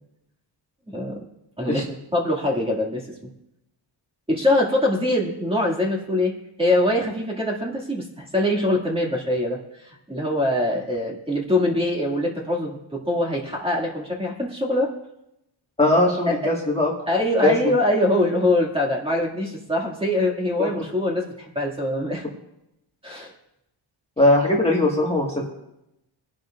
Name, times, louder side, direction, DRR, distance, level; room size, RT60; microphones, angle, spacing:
voice 1, 0.9-1.2 1.6-1.8 2.1-3.1 4.3-6.3 6.6-14.9 16.3-16.5 17.1-22.3 23.0-23.3, left 1 dB, 10° right, -2 dB, 2.3 m, -23 dB
voice 2, 15.8-16.9 17.4-17.5 20.6-20.7 24.2-25.4, left 2 dB, 15° left, -3 dB, 1.8 m, -19 dB
23.0 x 11.0 x 2.6 m, 0.86 s
wide cardioid pair, 120°, 47 cm